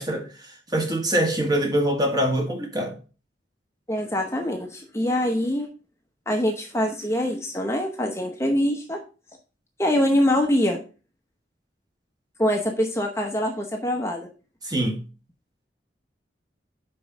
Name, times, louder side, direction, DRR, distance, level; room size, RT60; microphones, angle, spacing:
voice 1, 0.0-3.0 14.6-15.0, right 1 dB, 20° right, 1.6 m, -24 dB
voice 2, 3.9-5.7 6.3-9.0 9.8-10.8 12.4-14.3, left 1 dB, 15° left, 0.8 m, -24 dB
5.4 x 5.3 x 6.1 m
head